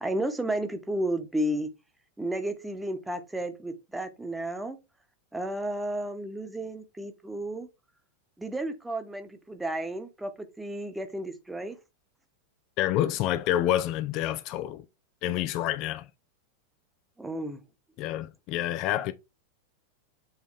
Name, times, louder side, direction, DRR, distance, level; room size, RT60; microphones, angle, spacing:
voice 1, 0.0-1.7 2.2-4.8 5.3-7.7 8.4-11.8 17.2-17.6, right 1 dB, 5° right, 1.2 m, -32 dB
voice 2, 12.8-14.8 15.2-16.1 18.0-19.1, left 13 dB, 40° left, 0.5 m, -28 dB
7.3 x 4.1 x 3.4 m
figure-of-eight pair, 90°, 0 cm